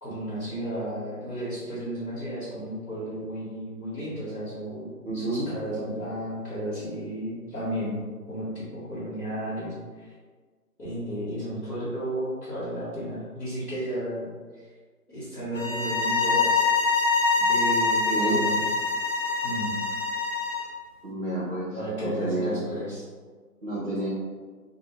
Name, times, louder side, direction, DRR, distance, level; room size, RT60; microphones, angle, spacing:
voice 1, 0.0-10.1 10.8-14.3 14.5-14.6 15.1-16.7 17.5-18.7 19.4-19.8 21.7-23.1, equal, 70° left, -11 dB, 1.4 m, -33 dB
voice 2, 5.0-5.5 18.1-18.4 21.0-22.6 23.6-24.1, right 2 dB, 45° right, -8 dB, 0.8 m, -30 dB
sound 1, 15.5-20.7, left 4 dB, 55° left, 0.5 m, -24 dB
2.7 x 2.6 x 3.0 m, 1.5 s
figure-of-eight pair, 165°, 47 cm